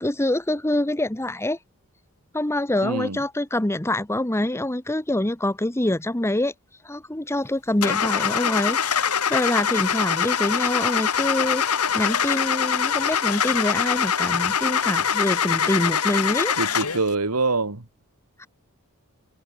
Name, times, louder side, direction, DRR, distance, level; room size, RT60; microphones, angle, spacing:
voice 1, 0.0-1.6 2.3-6.5 6.8-16.8 18.4-18.5, left 1 dB, 10° left, 1.1 m, -25 dB
voice 2, 2.8-3.2 16.6-17.9, right 3 dB, 80° right, 2.1 m, -25 dB
Car / Engine starting, 7.8-17.1, left 7 dB, 90° left, 2.1 m, -23 dB
head